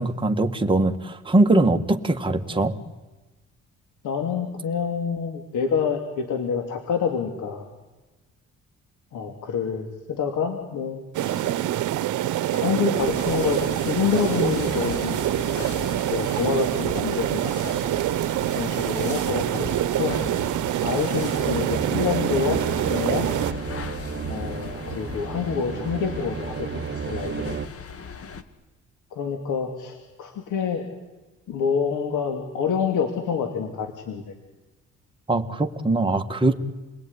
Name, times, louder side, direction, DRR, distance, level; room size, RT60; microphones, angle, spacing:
voice 1, 0.0-2.7 35.3-36.5, right 2 dB, 15° right, 4 dB, 1.8 m, -21 dB
voice 2, 4.0-7.7 9.1-11.5 12.5-17.7 18.5-19.7 19.9-20.2 20.8-23.3 24.3-27.6 29.1-30.9 31.5-34.2, left 6 dB, 80° left, 5 dB, 2.8 m, -27 dB
sound 1, 11.1-23.5, right 13 dB, 75° right, 1.0 m, -26 dB
sound 2, 13.0-28.4, left 6 dB, 50° left, 2.0 m, -38 dB
sound 3, 21.4-27.7, right 7 dB, 40° right, 1.1 m, -32 dB
28.5 x 20.5 x 9.8 m, 1.1 s
cardioid pair, 90°, 30 cm